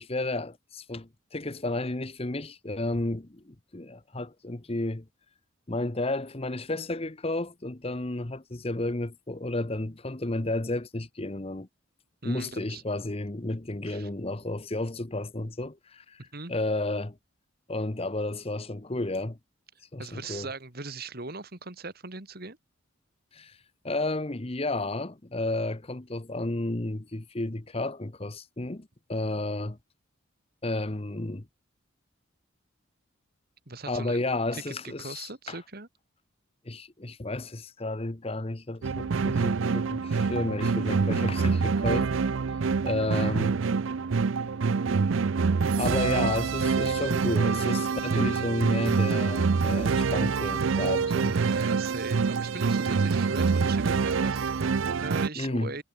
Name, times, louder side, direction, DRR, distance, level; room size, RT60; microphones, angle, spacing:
voice 1, 0.0-5.0 5.7-11.7 12.2-16.2 16.5-17.2 17.7-19.4 19.9-20.5 23.3-23.6 23.8-29.8 30.6-31.4 33.9-35.6 36.6-42.1 42.8-43.6 45.8-51.3 55.4-55.7, left 2 dB, 30° left, 1.0 m, -32 dB
voice 2, 12.2-12.8 13.9-14.1 16.2-16.5 20.0-22.6 33.7-34.2 34.5-35.9 51.2-55.8, right 3 dB, 45° right, 2.4 m, -40 dB
sound 1, 38.8-55.3, right 5 dB, 70° right, 0.5 m, -26 dB
head